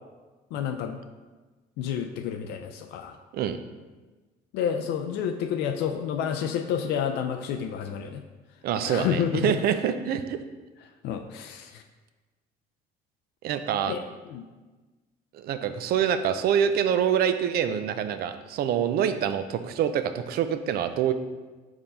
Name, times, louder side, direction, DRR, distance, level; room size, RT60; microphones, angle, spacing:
voice 1, 0.5-1.0 1.8-3.2 4.5-8.2 8.8-9.6 11.0-11.8 13.9-14.0 14.3-14.5, left 8 dB, 85° left, 5 dB, 0.4 m, -29 dB
voice 2, 8.6-10.4 13.4-13.9 15.3-21.1, right 8 dB, 65° right, 10 dB, 0.5 m, -26 dB
4.8 x 3.8 x 5.4 m, 1.3 s
cardioid pair, 110°, 17 cm